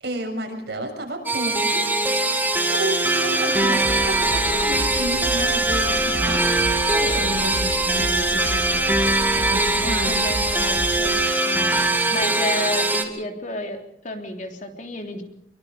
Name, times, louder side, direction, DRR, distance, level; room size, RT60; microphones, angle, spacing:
voice 1, 0.0-1.8 2.7-9.0 9.5-10.3, right 1 dB, 65° right, 3 dB, 6.7 m, -31 dB
sound 1, 1.3-13.0, right 2 dB, 10° right, 2.4 m, -21 dB
sound 2, 3.8-11.2, equal, 25° left, 2.2 m, -33 dB
voice 2, 9.7-11.8 12.1-15.2, left 1 dB, 45° left, 3 dB, 3.4 m, -31 dB
25.0 x 24.0 x 5.2 m, 0.73 s
head